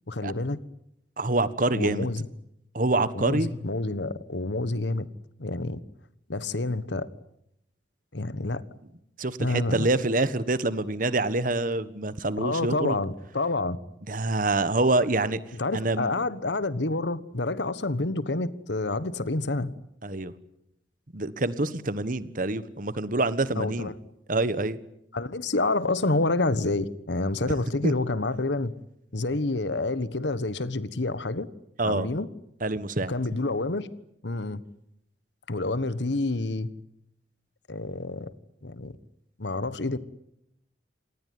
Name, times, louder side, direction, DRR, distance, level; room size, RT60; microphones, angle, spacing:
voice 1, 0.1-0.6 1.7-2.3 3.1-5.1 5.4-5.8 6.3-7.1 8.1-8.6 9.4-9.9 12.4-13.8 15.5-19.7 23.6-23.9 25.1-28.7 29.1-31.5 31.8-32.3 33.1-33.9 34.2-34.6 35.5-36.7 37.7-38.3 38.6-39.0 39.4-40.0, left 2 dB, 80° left, 16 dB, 1.3 m, -28 dB
voice 2, 1.2-2.1 2.7-3.5 9.2-13.0 14.1-15.4 15.7-16.1 20.0-20.3 21.1-23.9 24.3-24.8 27.4-27.5 27.8-27.9 31.8-32.1 32.6-33.1, right 2 dB, 50° right, 15 dB, 1.4 m, -26 dB
27.0 x 19.5 x 9.5 m, 0.81 s
head